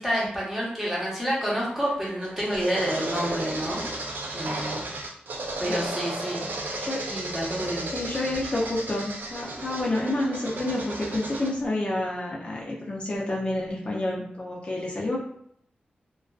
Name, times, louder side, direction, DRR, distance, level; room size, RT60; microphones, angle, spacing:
voice 1, 0.0-3.8 4.3-4.8 5.6-6.4 7.1-7.9, equal, 10° right, -6 dB, 0.9 m, -28 dB
sound 1, 1.9-11.5, right 2 dB, 80° right, 0.4 m, -34 dB
voice 2, 7.9-15.2, left 1 dB, 35° left, -4 dB, 0.4 m, -29 dB
2.3 x 2.2 x 2.3 m, 0.70 s
wide cardioid pair, 105°, 3 cm